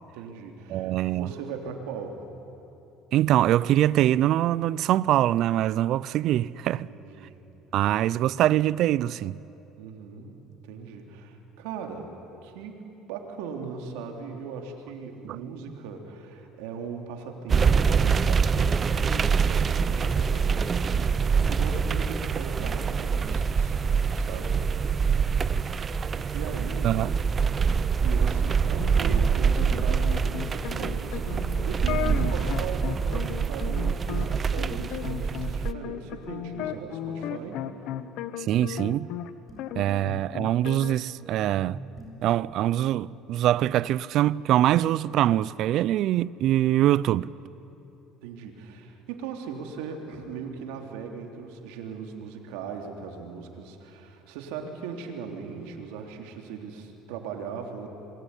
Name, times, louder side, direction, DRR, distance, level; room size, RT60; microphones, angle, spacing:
voice 1, 0.1-2.2 6.8-7.4 9.8-10.3 10.6-12.1 12.4-23.8 24.1-25.3 26.3-27.0 28.0-37.6 48.2-57.9, right 6 dB, 85° right, 3.5 m, -39 dB
voice 2, 0.7-1.3 3.1-6.9 7.7-9.4 15.2-15.4 26.8-27.1 38.5-39.1 39.8-41.8 42.2-47.3, right 13 dB, 60° right, 0.5 m, -23 dB
sound 1, 17.5-35.7, right 6 dB, 30° right, 0.9 m, -25 dB
sound 2, 28.8-39.3 39.6-40.9, left 11 dB, 70° left, 1.3 m, -35 dB
sound 3, 39.5-39.9 42.0-42.3, left 2 dB, 20° left, 7.5 m, -48 dB
26.5 x 22.5 x 9.9 m
cardioid pair, 110°, 0 cm